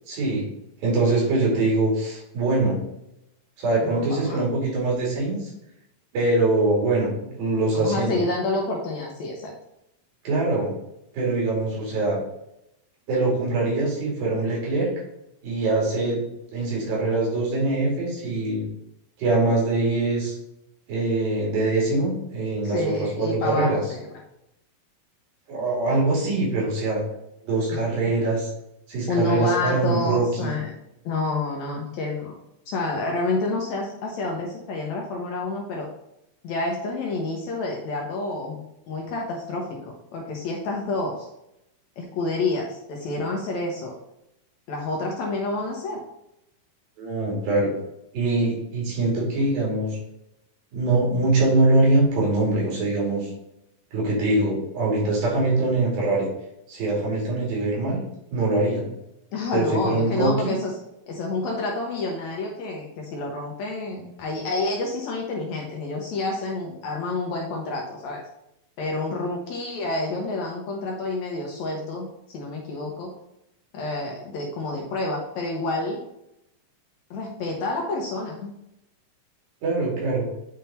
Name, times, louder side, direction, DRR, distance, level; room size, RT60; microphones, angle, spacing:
voice 1, 0.1-0.5 0.8-2.8 3.6-5.5 6.1-8.2 10.2-10.7 11.1-12.2 13.1-14.9 15.4-16.2 16.5-18.6 19.2-20.3 20.9-23.8 25.5-27.0 27.4-28.5 28.9-30.5 47.0-47.7 48.1-50.0 50.7-53.3 53.9-56.3 56.7-58.0 58.3-58.9 59.5-60.5 79.6-80.2, right 2 dB, 80° right, -4 dB, 4.4 m, -23 dB
voice 2, 3.8-4.4 7.7-9.5 22.6-24.0 29.1-30.8 31.1-32.3 32.7-35.9 36.4-38.6 38.9-41.3 42.0-44.0 44.7-46.0 59.3-60.7 61.1-68.2 68.8-73.1 73.7-76.0 77.1-78.5, left 2 dB, 70° left, 0 dB, 1.9 m, -28 dB
8.9 x 3.7 x 4.3 m, 0.84 s
omnidirectional pair, 4.1 m